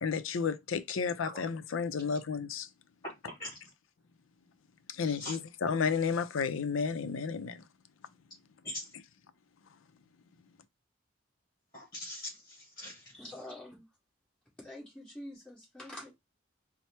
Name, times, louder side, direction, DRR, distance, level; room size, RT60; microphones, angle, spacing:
voice 1, 0.0-2.7 4.9-7.6, left 5 dB, 85° left, 0.5 m, -32 dB
voice 2, 3.0-3.6 5.0-5.3 8.6-8.9 11.7-13.0, left 1 dB, 20° left, 1.7 m, -42 dB
voice 3, 13.1-13.8 14.6-16.1, left 1 dB, 5° left, 1.7 m, -46 dB
4.5 x 2.1 x 4.2 m
head